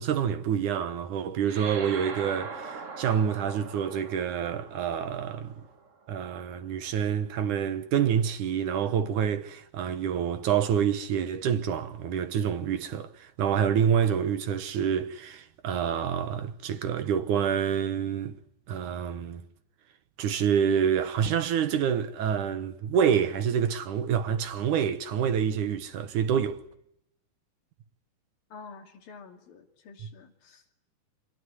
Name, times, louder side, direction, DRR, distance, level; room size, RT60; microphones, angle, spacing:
voice 1, 0.0-5.5 6.1-18.4 18.7-19.4 20.2-26.6, right 8 dB, 65° right, 2.5 m, -27 dB
sound 1, 1.4-6.2, right 4 dB, 90° right, 0.6 m, -42 dB
voice 2, 28.5-30.7, left 5 dB, 80° left, 4.6 m, -48 dB
27.5 x 21.5 x 10.0 m
omnidirectional pair, 4.1 m